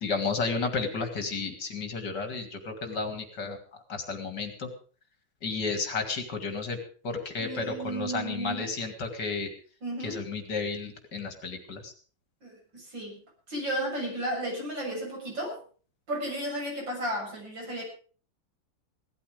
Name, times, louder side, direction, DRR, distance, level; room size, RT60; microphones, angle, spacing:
voice 1, 0.0-3.6 3.9-4.7 5.4-6.8 7.0-9.5 10.0-11.9, left 4 dB, 60° left, 6 dB, 2.8 m, -32 dB
voice 2, 7.4-8.8 9.8-10.3 12.4-13.2 13.5-15.6 16.1-17.8, right 1 dB, 65° right, -1 dB, 7.9 m, -34 dB
17.5 x 13.0 x 5.2 m, 0.41 s
omnidirectional pair, 2.1 m